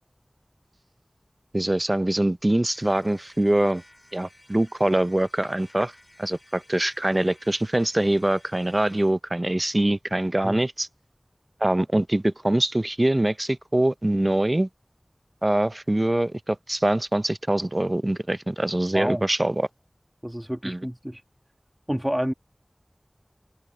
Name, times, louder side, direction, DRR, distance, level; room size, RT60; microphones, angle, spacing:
voice 1, 1.5-3.8 4.1-5.9 6.2-10.9 11.6-14.7 15.4-19.7 20.6-20.8, right 1 dB, 40° right, 0.5 m, -23 dB
sound 1, 2.7-9.2, left 1 dB, 20° left, 5.6 m, -55 dB
voice 2, 18.9-19.3 20.2-21.2 21.9-22.3, equal, 15° right, 1.4 m, -28 dB
wide cardioid pair, 40°, 0 cm